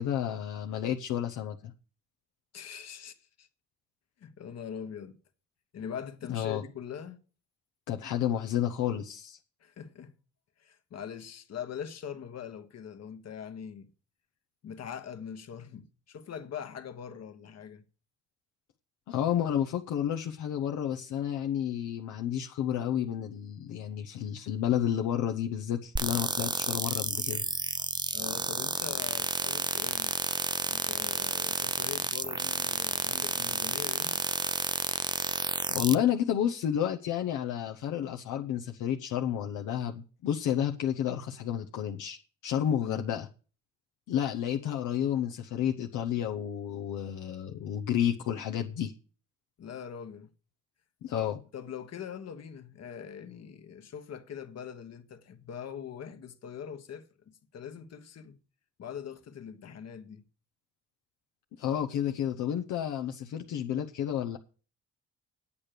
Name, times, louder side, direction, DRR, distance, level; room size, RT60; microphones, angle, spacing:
voice 1, 0.0-1.7 6.3-6.6 7.9-9.4 19.1-27.5 35.7-42.2 42.4-43.3 44.1-48.9 51.0-51.4 61.6-64.4, left 10 dB, 80° left, 0.9 m, -31 dB
voice 2, 2.5-3.5 4.2-5.2 5.7-7.2 9.6-10.2 10.6-13.9 14.6-17.8 28.1-30.1 30.7-34.2 42.8-43.0 49.6-50.3 51.1-58.4 58.8-60.2, left 8 dB, 60° left, 1.4 m, -42 dB
sound 1, 26.0-35.9, right 3 dB, 15° right, 0.5 m, -31 dB
8.9 x 8.5 x 6.7 m
cardioid pair, 90°, 30 cm